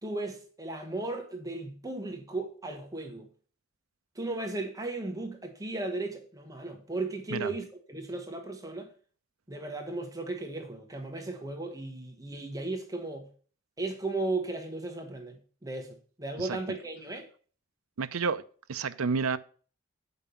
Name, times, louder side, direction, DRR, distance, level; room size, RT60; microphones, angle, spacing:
voice 1, 0.0-3.3 4.1-8.9 9.5-13.3 13.8-17.3, right 2 dB, 15° right, 1.2 m, -36 dB
voice 2, 18.0-18.4 18.7-19.4, right 5 dB, 90° right, 0.6 m, -30 dB
8.4 x 5.4 x 6.8 m
head